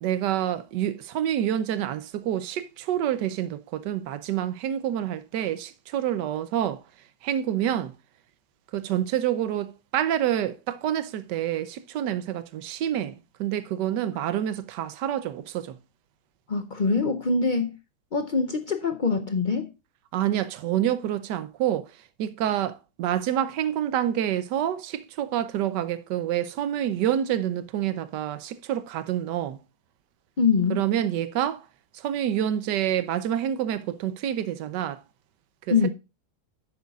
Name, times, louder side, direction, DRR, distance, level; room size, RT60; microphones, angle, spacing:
voice 1, 0.0-6.8 7.2-7.9 8.7-15.8 20.1-29.6 30.7-31.7 31.9-35.0 35.7-35.8, right 11 dB, 90° right, 1.3 m, -27 dB
voice 2, 16.5-17.7 18.1-19.7 30.4-30.8 35.7-35.9, left 4 dB, 60° left, 0.4 m, -24 dB
10.5 x 8.3 x 2.3 m
omnidirectional pair, 1.8 m